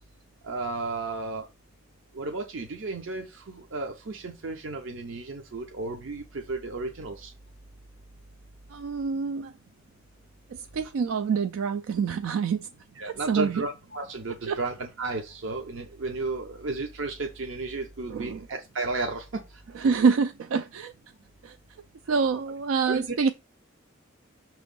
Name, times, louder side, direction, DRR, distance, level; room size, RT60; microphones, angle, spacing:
voice 1, 0.4-1.5 2.1-7.3 13.0-19.4 19.8-19.9 22.9-23.2, right 3 dB, 65° right, 0.7 m, -33 dB
voice 2, 8.7-9.5 10.5-12.7 13.0-13.6 14.5-14.6 18.1-18.5 19.7-20.9 21.4-21.6 22.1-23.3, right 5 dB, 85° right, 0.4 m, -26 dB
6.0 x 3.1 x 5.3 m
head